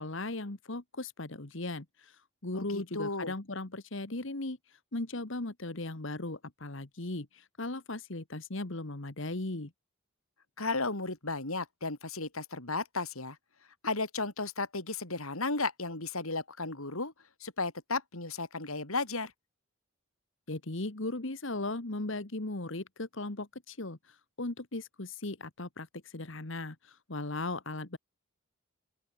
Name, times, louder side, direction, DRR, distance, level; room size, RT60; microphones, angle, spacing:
voice 1, 0.0-9.7 20.5-28.0, left 2 dB, 60° left, 1.6 m, -37 dB
voice 2, 2.5-3.3 10.6-13.4 13.8-17.1 17.4-19.3, left 3 dB, 80° left, 5.2 m, -34 dB
open air
head